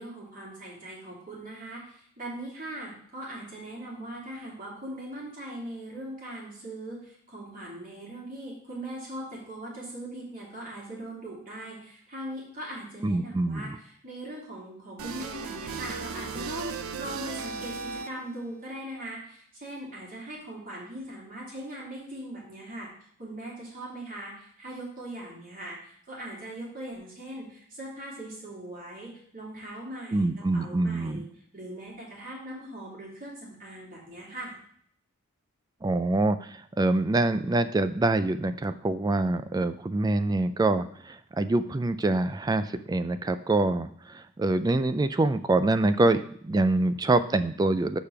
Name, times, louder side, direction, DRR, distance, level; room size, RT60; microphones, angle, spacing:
voice 1, 0.0-22.9 23.2-30.3 30.5-31.3 31.5-34.6, right 1 dB, 40° right, -4 dB, 3.0 m, -40 dB
voice 2, 13.0-13.8 30.1-31.2 35.8-48.0, right 2 dB, 20° right, 12 dB, 0.3 m, -25 dB
sound 1, 15.0-18.4, right 5 dB, 75° right, 0.6 m, -36 dB
6.7 x 5.1 x 5.8 m, 0.63 s
head